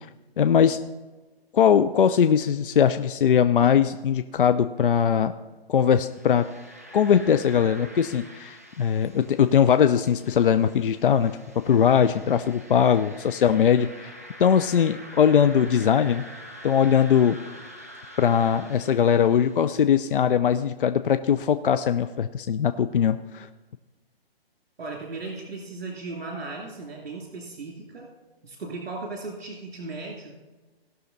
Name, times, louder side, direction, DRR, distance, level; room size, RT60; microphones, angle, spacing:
voice 1, 0.4-0.8 1.5-5.3 5.7-6.4 6.9-11.3 11.6-14.1 14.4-16.2 16.6-17.4 18.2-23.5, left 8 dB, 60° left, 10 dB, 0.5 m, -20 dB
sound 1, 6.0-19.9, equal, 15° right, 0.4 m, -46 dB
voice 2, 11.7-12.3 24.8-28.1 28.4-30.4, right 3 dB, 65° right, -1 dB, 2.6 m, -37 dB
17.5 x 6.3 x 4.0 m, 1.3 s
hypercardioid pair, 160°, 31 cm